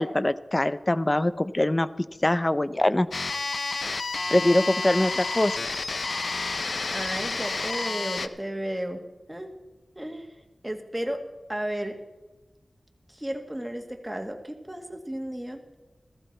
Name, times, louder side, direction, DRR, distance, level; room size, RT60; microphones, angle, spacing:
voice 1, 0.0-1.9 2.2-3.1 4.3-5.6, left 1 dB, 25° left, 15 dB, 0.6 m, -23 dB
sound 1, 3.1-8.3, left 3 dB, 75° left, 0.7 m, -30 dB
voice 2, 6.9-9.0 9.3-9.5 10.0-10.3 10.6-11.2 11.5-12.0 13.1-15.6, right 1 dB, 10° right, 4 dB, 2.0 m, -33 dB
14.5 x 14.5 x 4.3 m, 1.1 s
wide cardioid pair, 65°, 0 cm